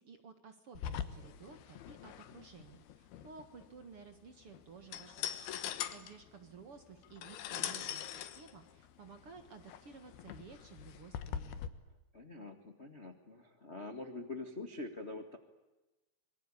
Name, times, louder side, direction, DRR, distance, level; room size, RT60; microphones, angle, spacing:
voice 1, 0.0-5.3 5.6-11.6, right 5 dB, 50° right, 8 dB, 2.0 m, -54 dB
sound 1, 0.7-11.7, left 10 dB, 85° left, 3.3 m, -43 dB
voice 2, 12.1-15.4, left 2 dB, 35° left, 7 dB, 1.1 m, -45 dB
25.0 x 23.0 x 8.5 m, 1.1 s
omnidirectional pair, 4.4 m